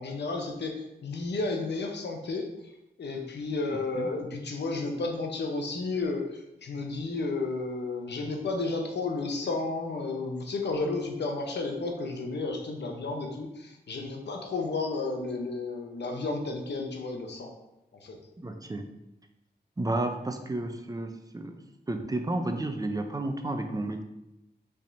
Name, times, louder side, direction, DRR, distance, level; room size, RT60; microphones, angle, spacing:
voice 1, 0.0-2.5 3.0-17.5 18.0-18.2, left 3 dB, 80° left, 2 dB, 0.8 m, -32 dB
voice 2, 18.4-18.9 19.8-21.6 21.9-24.0, right 2 dB, 20° right, 5 dB, 0.5 m, -32 dB
5.3 x 3.5 x 2.6 m, 0.90 s
cardioid pair, 65°, 18 cm